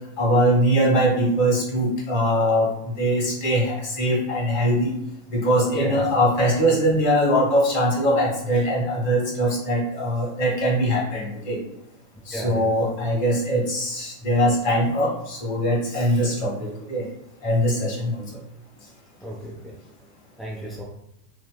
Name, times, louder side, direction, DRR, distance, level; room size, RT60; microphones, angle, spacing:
voice 1, 0.2-2.7 3.0-4.9 5.3-11.6 12.3-17.0 17.4-18.3, equal, 50° left, -3 dB, 1.4 m, -22 dB
voice 2, 5.7-6.0 12.3-12.7 19.2-19.7 20.4-20.8, right 1 dB, ahead, -4 dB, 0.4 m, -33 dB
3.5 x 2.1 x 2.2 m, 0.83 s
figure-of-eight pair, 90°, 0 cm